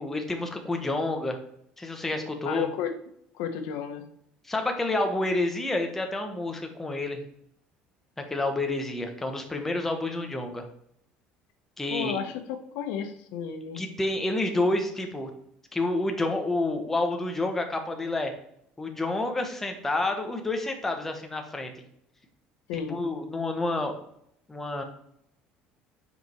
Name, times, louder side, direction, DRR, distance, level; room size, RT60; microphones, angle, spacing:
voice 1, 0.0-1.4 1.8-2.7 4.5-7.2 8.3-10.7 11.8-12.2 13.7-15.3 15.7-18.3 18.8-21.7 22.9-23.9 24.5-24.8, left 2 dB, 10° left, 4 dB, 1.3 m, -29 dB
voice 2, 2.4-2.9 3.3-4.0 11.9-12.4 12.7-13.8 14.5-14.7 22.7-23.0, left 8 dB, 90° left, 6 dB, 1.3 m, -32 dB
9.1 x 5.3 x 4.5 m, 0.72 s
cardioid pair, 150°, 3 cm